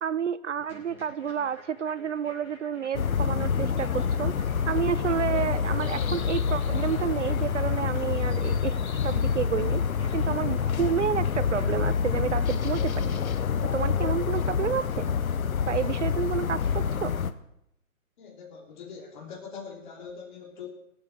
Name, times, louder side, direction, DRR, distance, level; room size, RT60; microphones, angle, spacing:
voice 1, 0.0-8.7 9.0-9.8 10.1-13.2 13.7-15.2 15.7-17.2, right 8 dB, 60° right, 17 dB, 0.5 m, -30 dB
sound 1, 0.6-13.4, equal, 5° right, 4.4 m, -52 dB
sound 2, 2.9-17.3, left 6 dB, 75° left, 1.1 m, -27 dB
voice 2, 18.2-20.7, left 6 dB, 35° left, -1 dB, 3.3 m, -42 dB
24.0 x 8.2 x 4.5 m, 0.79 s
hypercardioid pair, 165°, 43 cm